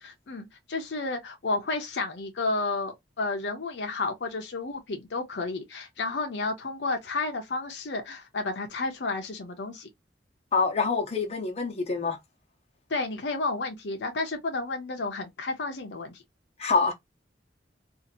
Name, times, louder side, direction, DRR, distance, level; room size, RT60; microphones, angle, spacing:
voice 1, 0.0-9.9 12.9-16.2, left 3 dB, 70° left, 0.6 m, -31 dB
voice 2, 10.5-12.2 16.6-16.9, left 4 dB, 40° left, 0.8 m, -26 dB
2.7 x 2.5 x 2.7 m
head